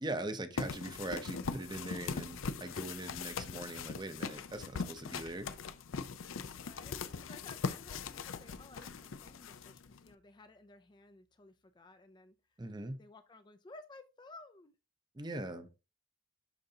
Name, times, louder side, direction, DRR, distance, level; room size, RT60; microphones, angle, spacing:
voice 1, 0.0-5.5 12.6-13.0 15.1-15.7, right 1 dB, 20° right, 0.6 m, -41 dB
sound 1, 0.6-10.1, left 5 dB, 90° left, 0.5 m, -41 dB
Clapping, 5.4-5.8 8.8-9.2, left 4 dB, 55° left, 1.1 m, -61 dB
voice 2, 6.5-12.3 13.0-14.7 15.3-15.5, left 3 dB, 20° left, 0.4 m, -56 dB
sound 2, 6.5-11.7, right 3 dB, 60° right, 2.2 m, -68 dB
11.0 x 3.9 x 2.8 m
head